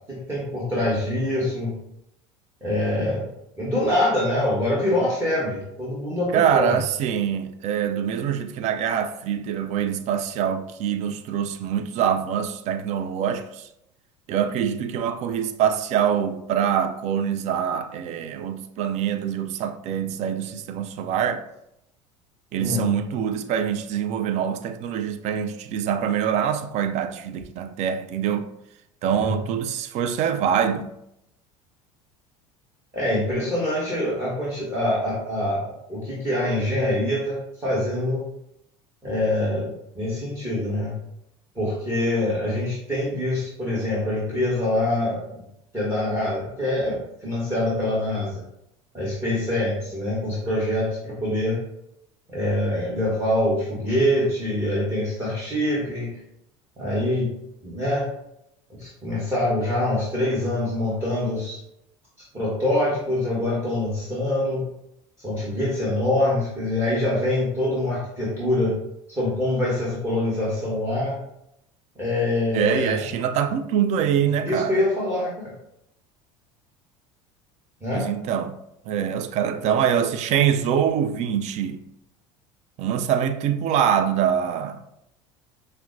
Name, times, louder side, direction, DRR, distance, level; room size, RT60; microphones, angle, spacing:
voice 1, 0.1-1.7 2.6-3.3 3.6-6.8 22.6-22.9 29.2-29.4 32.9-38.2 39.0-40.9 41.5-45.4 45.7-48.4 48.9-51.6 52.3-56.2 56.8-57.3 57.6-58.1 58.7-61.6 62.3-64.7 65.2-68.8 69.1-71.2 72.0-73.0 74.4-75.5 77.8-78.1, left 1 dB, 15° right, 1.3 m, -25 dB
voice 2, 6.3-13.7 14.3-21.4 22.5-28.5 29.0-30.9 72.5-74.8 77.9-78.6 78.9-81.8 82.8-84.8, right 8 dB, 50° right, 0.4 m, -24 dB
5.6 x 2.1 x 2.5 m
hypercardioid pair, 85°, 15 cm